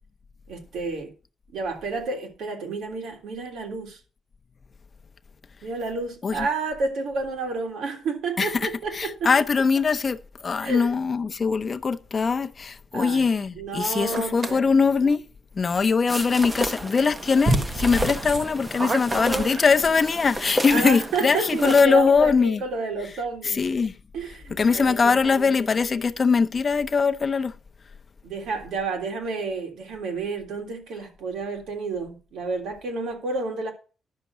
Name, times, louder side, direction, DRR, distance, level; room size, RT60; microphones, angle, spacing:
voice 1, 0.5-1.1 1.5-4.0 5.6-9.3 10.6-10.9 12.9-13.2 13.6-14.6 20.7-23.6 24.1-25.5 28.2-33.7, right 3 dB, 85° right, 3.2 m, -30 dB
voice 2, 8.4-15.2 15.6-22.6 23.4-23.9 24.5-27.5, left 5 dB, 30° left, 0.6 m, -22 dB
sound 1, 14.1-14.6 16.8-16.9 17.4-20.0, right 2 dB, 30° right, 1.3 m, -27 dB
sound 2, 16.1-21.8, equal, 10° right, 0.7 m, -32 dB
10.5 x 6.5 x 6.1 m
wide cardioid pair, 170°, 0 cm